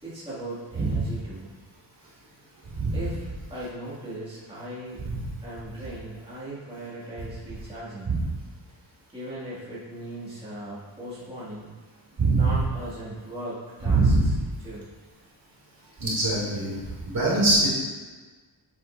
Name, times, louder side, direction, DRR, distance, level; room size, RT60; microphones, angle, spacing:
voice 1, 0.0-1.5 2.9-5.0 5.4-8.1 9.1-11.7 12.3-14.3 14.6-14.9, right 1 dB, 10° right, -11 dB, 2.2 m, -38 dB
voice 2, 12.2-12.5 13.8-14.3 16.0-16.8 17.1-17.7, right 3 dB, 50° right, -6 dB, 2.4 m, -22 dB
8.5 x 7.6 x 2.6 m, 1.3 s
wide cardioid pair, 165°, 45 cm